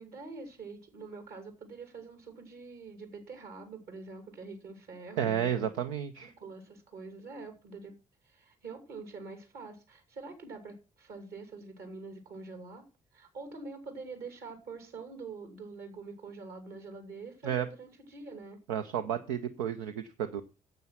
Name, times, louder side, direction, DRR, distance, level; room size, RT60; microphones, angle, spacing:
voice 1, 0.0-5.7 6.2-8.0 8.2-12.8 13.1-18.6, right 4 dB, 60° right, 6 dB, 3.0 m, -45 dB
voice 2, 5.2-6.3 17.4-17.7 18.7-20.4, right 9 dB, 75° right, 8 dB, 0.6 m, -32 dB
9.3 x 7.9 x 5.6 m, 0.31 s
figure-of-eight pair, 40°, 18 cm